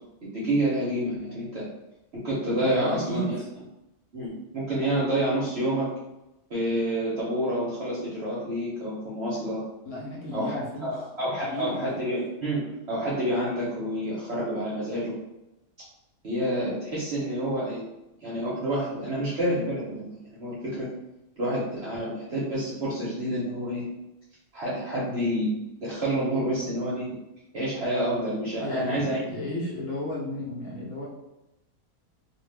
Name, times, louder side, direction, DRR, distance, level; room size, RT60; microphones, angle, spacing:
voice 1, 0.3-1.7 2.2-3.4 4.1-5.9 6.5-9.6 10.3-15.2 16.2-17.8 18.2-20.9 21.4-23.8 24.5-27.1 27.5-29.2, right 1 dB, 55° right, -7 dB, 0.8 m, -28 dB
voice 2, 2.6-3.4 9.8-10.9 11.3-12.1 28.6-31.0, left 1 dB, 55° left, -5 dB, 1.0 m, -33 dB
2.5 x 2.4 x 3.2 m, 0.93 s
omnidirectional pair, 1.7 m